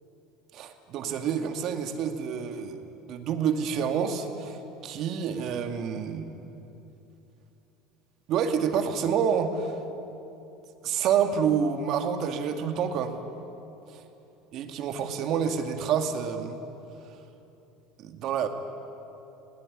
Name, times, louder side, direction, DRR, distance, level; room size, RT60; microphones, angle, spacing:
voice 1, 0.5-2.8 3.1-6.3 8.3-9.8 10.8-13.2 14.5-16.6 18.0-18.5, right 7 dB, 55° right, 6 dB, 2.1 m, -28 dB
20.5 x 18.0 x 9.9 m, 3.0 s
hypercardioid pair, 85°, 0 cm